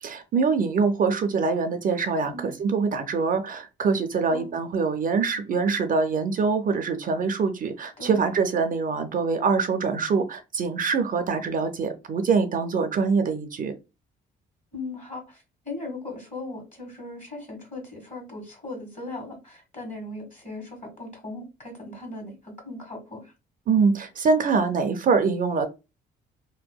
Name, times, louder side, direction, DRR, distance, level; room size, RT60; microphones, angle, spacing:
voice 1, 0.0-13.7 23.7-25.7, right 5 dB, 45° right, 0.4 m, -24 dB
voice 2, 4.3-4.6 8.0-8.2 14.7-15.4 15.6-23.3, left 2 dB, 40° left, 1.5 m, -38 dB
2.7 x 2.1 x 2.2 m
cardioid pair, 90°, 20 cm